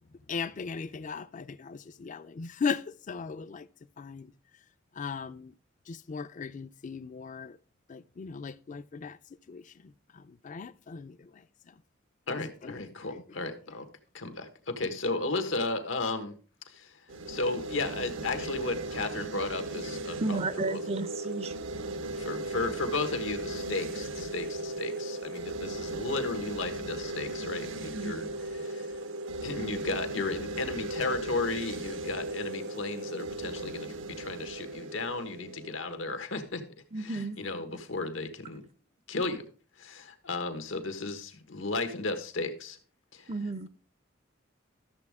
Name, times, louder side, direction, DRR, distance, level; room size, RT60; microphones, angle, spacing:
voice 1, 0.3-3.7 4.0-4.3 5.0-5.5 5.9-7.6 7.9-9.2 9.5-9.6 10.1-11.3 12.4-12.7, left 5 dB, 40° left, 0.4 m, -37 dB
voice 2, 12.3-13.9 14.1-16.3 16.7-20.4 20.7-20.8 22.2-29.0 29.4-36.6 37.0-38.6 39.1-39.4 39.8-42.8 43.1-43.3, left 3 dB, 90° left, 1.3 m, -34 dB
sound 1, 17.1-36.2, right 2 dB, 75° right, 0.8 m, -37 dB
voice 3, 20.2-21.6 27.9-28.1 36.9-37.4 43.3-43.7, right 3 dB, 35° right, 0.5 m, -32 dB
13.0 x 7.3 x 3.6 m
head